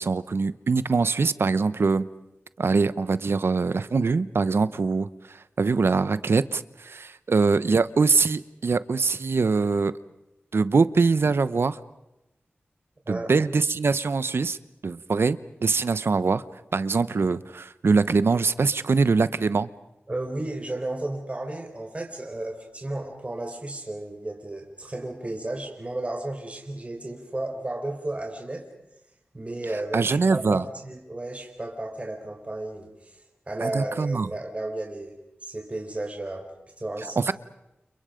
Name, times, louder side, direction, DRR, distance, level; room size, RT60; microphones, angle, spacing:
voice 1, 0.0-2.0 2.6-9.9 10.5-11.8 13.1-14.6 14.8-16.4 16.7-19.7 29.9-30.6 33.6-34.3 37.2-37.3, right 4 dB, 70° right, 15 dB, 1.0 m, -23 dB
voice 2, 20.1-28.7 29.3-35.2 35.4-36.5 36.8-37.2, right 2 dB, 30° right, 2 dB, 4.5 m, -33 dB
30.0 x 29.5 x 5.2 m, 0.93 s
wide cardioid pair, 70°, 4 cm